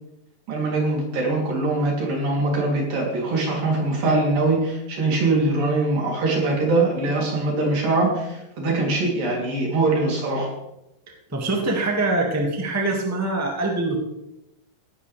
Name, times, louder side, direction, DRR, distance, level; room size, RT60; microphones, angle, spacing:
voice 1, 0.5-10.5, right 2 dB, 75° right, -1 dB, 5.0 m, -22 dB
voice 2, 11.3-14.0, right 2 dB, 5° right, 0 dB, 1.3 m, -24 dB
17.0 x 12.5 x 3.5 m, 0.88 s
omnidirectional pair, 4.0 m